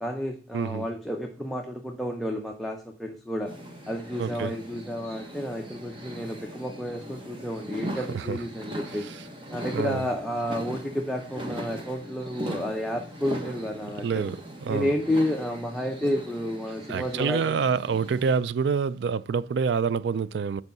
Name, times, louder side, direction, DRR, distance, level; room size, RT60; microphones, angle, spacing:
voice 1, 0.0-3.5 3.9-9.1 9.5-14.2 14.7-17.5, equal, ahead, 0.6 m, -31 dB
voice 2, 0.5-0.9 4.2-4.5 6.1-6.2 8.0-8.4 8.9-9.2 9.7-10.0 13.4-13.5 14.0-14.9 16.9-20.6, right 6 dB, 65° right, 0.3 m, -27 dB
sound 1, 3.4-18.4, right 1 dB, 25° right, 1.2 m, -40 dB
8.0 x 4.7 x 5.4 m
head